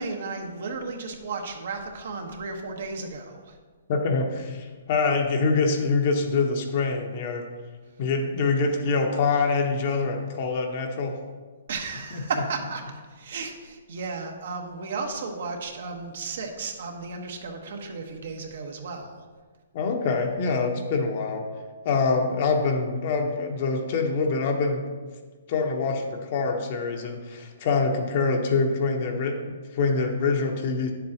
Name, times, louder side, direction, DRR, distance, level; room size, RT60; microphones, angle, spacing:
voice 1, 0.0-3.6 11.7-19.3, right 4 dB, 65° right, 3 dB, 1.2 m, -34 dB
voice 2, 3.9-7.5 8.0-11.2 19.7-21.5 21.8-24.9 25.5-30.9, left 4 dB, 45° left, 3 dB, 1.1 m, -25 dB
9.4 x 7.3 x 2.9 m, 1.4 s
hypercardioid pair, 150°, 0 cm